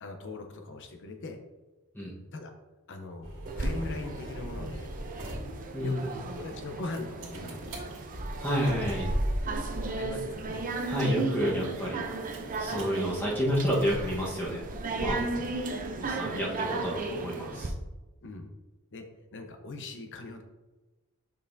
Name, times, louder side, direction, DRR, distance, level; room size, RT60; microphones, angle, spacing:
voice 1, 0.0-1.4 2.3-2.5 2.9-3.3 3.6-4.9 5.8-7.9 10.0-10.6 15.2-15.6 18.2-18.5 18.9-19.1 19.3-20.4, left 2 dB, 55° left, 5 dB, 0.8 m, -40 dB
sound 1, 3.2-16.4, equal, 60° right, 1.9 m, -39 dB
sound 2, 3.5-17.7, right 3 dB, 40° right, 0.6 m, -36 dB
voice 2, 8.4-9.1 10.9-12.0 12.6-14.6 15.0-15.2 15.9-17.7, equal, 10° left, -5 dB, 1.3 m, -30 dB
6.7 x 5.5 x 2.7 m, 1.1 s
head